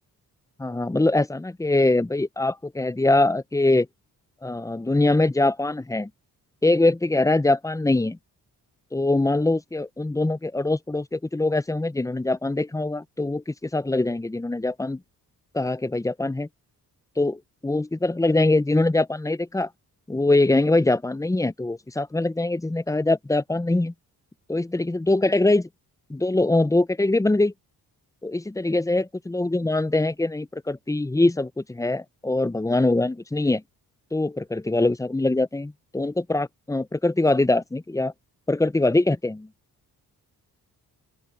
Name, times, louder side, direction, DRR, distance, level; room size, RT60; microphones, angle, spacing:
voice 1, 0.6-3.9 4.4-6.1 6.6-8.2 8.9-15.0 15.5-16.5 17.2-19.7 20.1-23.9 24.5-25.7 26.1-27.5 28.2-33.6 34.1-38.1 38.5-39.5, left 2 dB, 10° left, 0.6 m, -23 dB
open air
cardioid pair, 70°, 39 cm